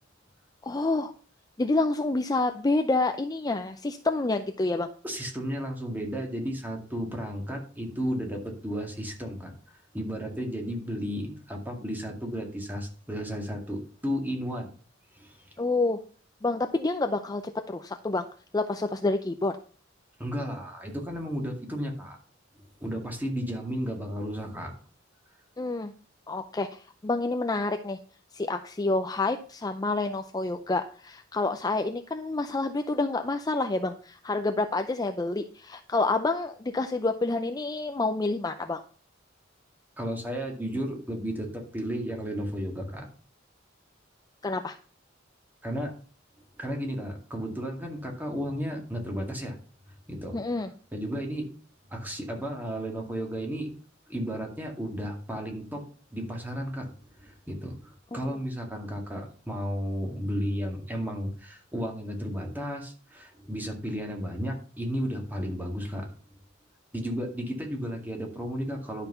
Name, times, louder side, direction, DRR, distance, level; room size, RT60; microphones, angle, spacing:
voice 1, 0.6-1.1 1.6-4.9 15.6-16.0 16.4-18.3 18.5-19.6 25.6-25.9 26.3-28.0 28.3-38.8 44.4-44.8 50.3-50.7 58.1-58.2, left 2 dB, 20° left, 6 dB, 0.5 m, -28 dB
voice 2, 5.0-9.5 9.9-14.7 15.1-15.4 20.2-22.2 22.8-24.7 40.0-43.1 45.6-45.9 46.6-49.5 50.1-50.4 50.9-51.5 51.9-53.7 54.1-55.8 56.1-66.1 66.9-69.1, equal, 10° right, 1 dB, 2.2 m, -33 dB
11.0 x 5.8 x 5.6 m, 0.41 s
head